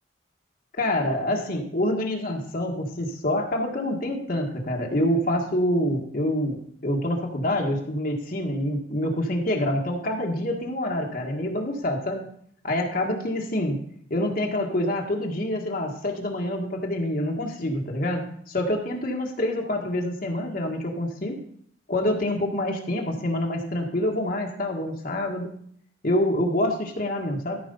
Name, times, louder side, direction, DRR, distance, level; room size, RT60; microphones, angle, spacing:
voice 1, 0.8-12.2 12.6-13.8 14.1-21.4 21.9-25.5 26.0-27.6, left 1 dB, 50° left, 0 dB, 1.6 m, -26 dB
13.5 x 4.9 x 5.4 m, 0.65 s
head